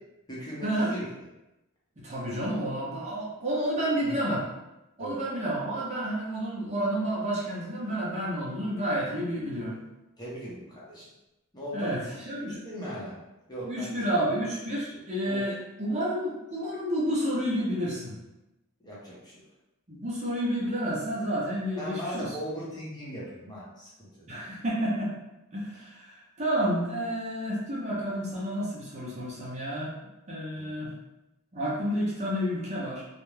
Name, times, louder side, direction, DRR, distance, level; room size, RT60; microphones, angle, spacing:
voice 1, 0.3-1.1 4.0-4.3 5.0-5.2 10.2-11.1 11.5-12.0 12.4-13.2 13.5-14.0 15.3-15.5 18.8-19.4 21.8-24.1 30.6-30.7, equal, 20° left, -7 dB, 0.7 m, -38 dB
voice 2, 2.0-4.4 5.0-9.8 11.7-12.0 12.3-12.6 13.6-18.2 19.9-22.3 24.3-25.1 25.5-29.9 30.3-30.9 31.5-33.0, equal, 30° right, -6 dB, 0.6 m, -30 dB
2.4 x 2.1 x 3.1 m, 0.95 s
head